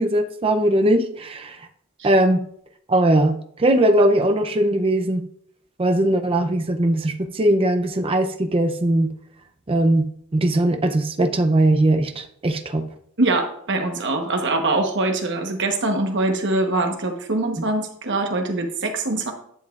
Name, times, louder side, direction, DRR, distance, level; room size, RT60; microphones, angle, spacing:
voice 1, 0.0-1.6 2.0-2.4 2.9-5.2 5.8-9.1 9.7-12.9, right 1 dB, 25° right, 6 dB, 0.6 m, -20 dB
voice 2, 13.2-19.3, right 2 dB, 55° right, 4 dB, 1.1 m, -23 dB
11.0 x 7.1 x 2.4 m, 0.68 s
head